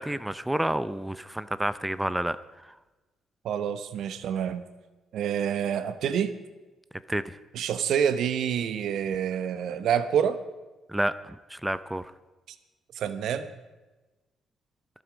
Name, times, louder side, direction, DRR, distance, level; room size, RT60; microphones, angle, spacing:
voice 1, 0.0-2.4 7.1-7.2 10.9-12.0, right 1 dB, 5° right, 14 dB, 0.5 m, -29 dB
voice 2, 3.4-4.6 5.1-6.3 7.5-10.4 13.0-13.5, right 8 dB, 75° right, 11 dB, 0.9 m, -27 dB
23.5 x 8.0 x 5.1 m, 1.2 s
cardioid pair, 90°, 0 cm